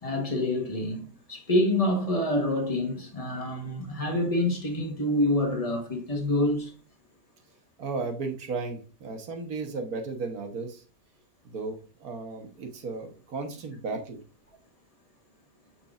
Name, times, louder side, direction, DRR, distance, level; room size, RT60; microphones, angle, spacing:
voice 1, 0.0-6.7, left 1 dB, 20° left, 1.2 m, -27 dB
voice 2, 7.8-10.8 11.4-14.2, right 4 dB, 60° right, 1.5 m, -35 dB
7.1 x 6.0 x 2.5 m
omnidirectional pair, 1.9 m